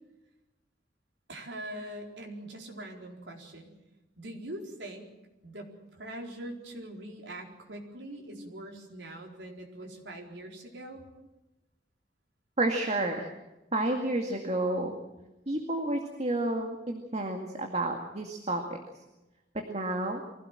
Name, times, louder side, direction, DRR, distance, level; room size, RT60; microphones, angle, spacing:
voice 1, 1.3-3.7 4.2-5.1 5.4-11.0, right 1 dB, 75° right, 1 dB, 4.3 m, -43 dB
voice 2, 12.6-13.3 13.7-14.9 15.5-18.8 19.7-20.2, right 2 dB, 40° right, 3 dB, 2.2 m, -30 dB
24.0 x 17.0 x 7.6 m, 1.0 s
head